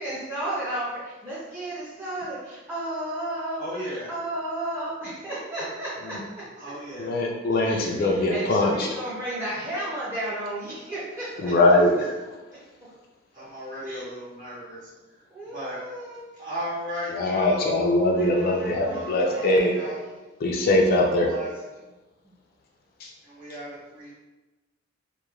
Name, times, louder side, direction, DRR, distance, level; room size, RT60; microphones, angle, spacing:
voice 1, 0.0-3.6 4.1-6.2 7.7-7.8 8.3-11.5 13.8-14.0 15.3-16.2 18.1-19.0 19.3-19.9, right 1 dB, 15° right, -10 dB, 0.5 m, -33 dB
voice 2, 3.6-4.1 6.6-7.1 7.5-8.0 11.5-11.9 13.3-15.2 15.5-15.8 16.3-17.7 18.9-20.0 20.9-21.5 23.2-24.1, equal, 45° right, -9 dB, 1.3 m, -36 dB
voice 3, 7.0-9.0 11.4-12.2 17.1-19.8 20.4-21.3 23.0-23.1, left 1 dB, 50° left, 0 dB, 0.3 m, -22 dB
2.9 x 2.1 x 2.3 m, 1.1 s
head